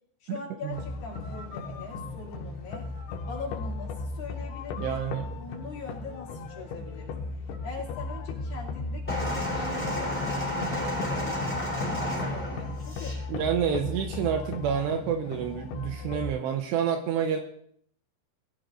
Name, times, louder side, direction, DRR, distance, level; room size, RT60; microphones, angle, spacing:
voice 1, 0.2-2.9 3.3-5.0 5.3-7.2 7.6-10.2 10.7-13.3, left 4 dB, 55° left, -5 dB, 4.2 m, -42 dB
sound 1, 0.7-16.3, left 3 dB, 75° left, 3.7 m, -36 dB
voice 2, 4.8-5.3 13.3-17.4, right 8 dB, 80° right, 4 dB, 2.8 m, -28 dB
sound 2, 9.1-13.2 14.1-14.2, left 1 dB, 5° left, 3.2 m, -31 dB
22.0 x 15.0 x 2.6 m, 0.65 s
omnidirectional pair, 5.3 m